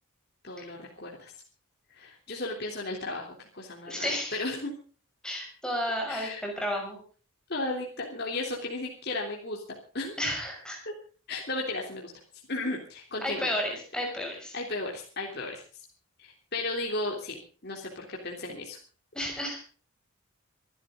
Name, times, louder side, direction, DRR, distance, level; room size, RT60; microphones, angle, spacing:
voice 1, 0.4-1.3 1.9-4.1 4.4-4.7 6.1-6.4 7.5-9.6 9.9-10.1 11.3-12.1 12.5-13.5 14.5-15.6 16.2-18.8, left 2 dB, 50° left, -1 dB, 3.4 m, -34 dB
voice 2, 3.8-4.4 5.2-7.0 10.2-10.8 13.2-14.6 19.1-19.6, equal, 5° left, 0 dB, 6.6 m, -32 dB
26.0 x 12.0 x 3.8 m, 0.39 s
head